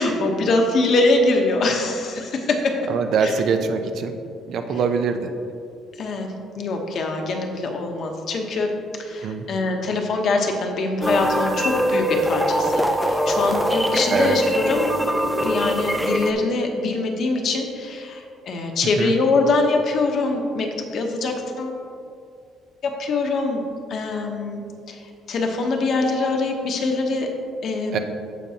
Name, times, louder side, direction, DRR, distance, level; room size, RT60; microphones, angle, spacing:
voice 1, 0.0-2.7 3.2-3.3 6.0-8.7 9.0-14.9 15.4-21.8 22.8-23.6 23.9-24.6 24.9-27.3 27.6-28.0, left 3 dB, 45° left, 3 dB, 1.0 m, -23 dB
voice 2, 2.9-4.1 4.5-5.3 9.2-9.4 14.1-14.4 19.0-19.1 27.9-28.0, right 5 dB, 50° right, 6 dB, 0.6 m, -23 dB
sound 1, 11.0-16.3, equal, ahead, 0.5 m, -22 dB
15.5 x 5.2 x 2.8 m, 2.4 s
cardioid pair, 165°, 0 cm